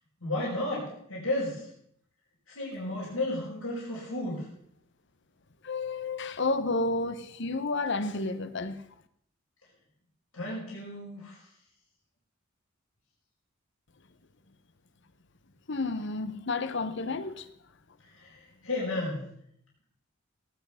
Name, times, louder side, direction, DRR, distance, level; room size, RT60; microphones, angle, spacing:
voice 1, 0.2-1.7 2.5-4.5 10.3-11.4 18.2-19.2, left 2 dB, 80° left, 5.3 m, -33 dB
voice 2, 5.6-8.8 15.7-17.5, left 3 dB, 60° left, 1.1 m, -31 dB
17.5 x 10.5 x 5.7 m
head